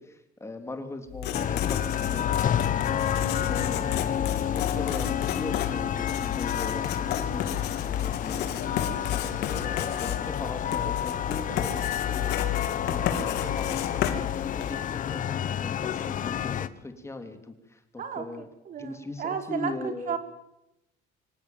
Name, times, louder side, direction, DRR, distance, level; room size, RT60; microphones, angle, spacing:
voice 1, 0.0-2.2 3.4-4.2 4.5-8.6 9.1-12.3 12.8-18.5 18.8-20.2, left 2 dB, 15° left, 6 dB, 3.2 m, -39 dB
Writing, 1.1-14.9, left 11 dB, 90° left, 3.0 m, -31 dB
sound 1, 1.3-16.7, left 9 dB, 50° left, 1.2 m, -30 dB
voice 2, 18.0-20.2, right 7 dB, 55° right, 7 dB, 3.5 m, -34 dB
25.5 x 17.0 x 9.2 m, 0.89 s
cardioid pair, 110°, 17 cm